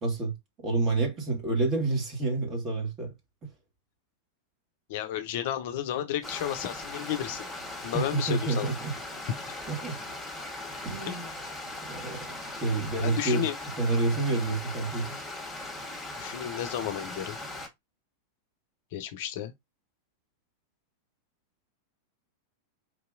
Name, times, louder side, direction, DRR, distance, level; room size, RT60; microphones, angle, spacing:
voice 1, 0.0-3.1 7.9-8.9 9.7-10.0 10.8-11.3 11.8-13.5 13.8-15.2, right 3 dB, 25° right, 1.6 m, -29 dB
voice 2, 4.9-7.4 7.8-8.7 9.5-9.6 11.1-11.2 13.0-13.5 16.2-17.4 18.9-19.5, left 11 dB, 50° left, 0.5 m, -32 dB
Stream, 6.2-17.7, left 2 dB, ahead, 1.4 m, -39 dB
4.5 x 2.7 x 2.5 m
figure-of-eight pair, 90°, 0 cm